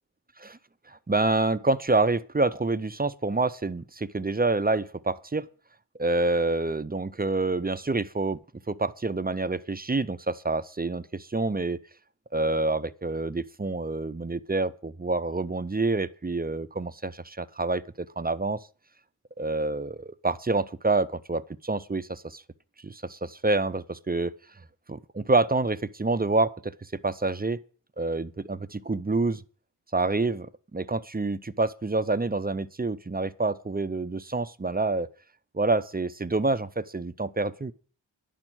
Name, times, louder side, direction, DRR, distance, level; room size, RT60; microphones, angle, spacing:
voice 1, 0.9-5.5 6.0-8.4 8.7-11.8 12.3-18.6 19.4-22.4 22.8-24.3 24.9-27.6 28.0-29.4 29.9-30.5 30.7-35.1 35.5-37.7, right 3 dB, 20° right, 0.5 m, -27 dB
11.0 x 6.2 x 8.9 m
wide cardioid pair, 80°, 46 cm